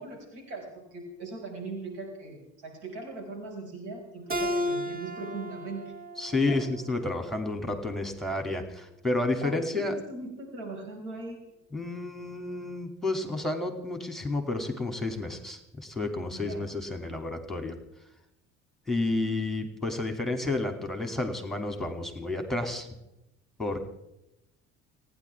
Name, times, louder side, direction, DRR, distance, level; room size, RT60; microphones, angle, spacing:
voice 1, 0.0-5.8 6.5-6.6 9.4-11.4 16.3-16.7, right 2 dB, 80° right, 1 dB, 5.9 m, -40 dB
Keyboard (musical), 4.3-7.5, equal, 25° right, 2.9 m, -34 dB
voice 2, 6.2-10.0 11.7-17.8 18.9-22.9 23.6-23.9, left 2 dB, ahead, 5 dB, 2.8 m, -31 dB
29.5 x 10.5 x 3.6 m, 0.90 s
hypercardioid pair, 65°, 35 cm